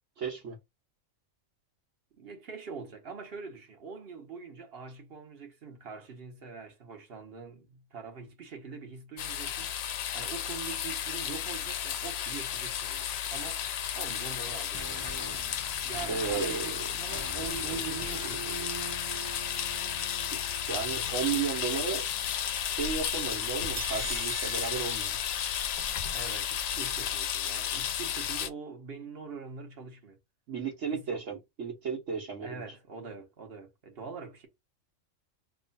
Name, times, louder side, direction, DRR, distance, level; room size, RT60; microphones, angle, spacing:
voice 1, 0.2-0.6 16.1-16.7 20.3-22.0 22.6-25.2 30.5-32.6, right 6 dB, 70° right, 1.3 m, -34 dB
voice 2, 2.2-9.9 10.1-15.1 15.8-18.7 26.1-30.2 30.9-31.2 32.4-34.5, right 5 dB, 55° right, 1.2 m, -43 dB
sound 1, 9.2-28.5, left 9 dB, 65° left, 0.7 m, -33 dB
sound 2, 14.4-23.8 24.1-24.2, right 2 dB, 25° right, 0.4 m, -45 dB
sound 3, 23.8-25.9, right 9 dB, 85° right, 1.1 m, -42 dB
3.0 x 2.3 x 4.0 m
omnidirectional pair, 1.3 m